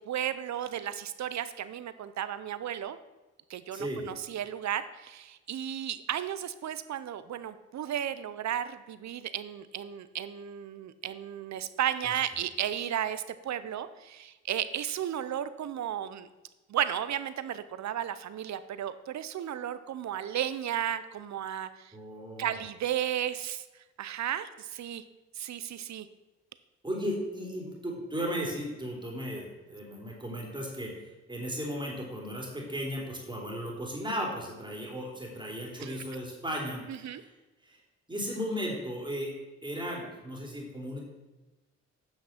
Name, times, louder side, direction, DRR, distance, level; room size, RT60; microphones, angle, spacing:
voice 1, 0.0-3.0 3.5-16.3 16.7-21.9 22.4-23.7 24.0-25.0 25.3-26.1 35.8-36.0 36.9-37.2, right 10 dB, 70° right, 13 dB, 0.7 m, -34 dB
voice 2, 3.7-4.1 21.9-22.6 26.8-37.3 37.6-37.8 38.1-39.3 39.6-41.0, equal, 15° right, -1 dB, 3.3 m, -36 dB
9.0 x 6.0 x 5.9 m, 1.1 s
cardioid pair, 70°, 29 cm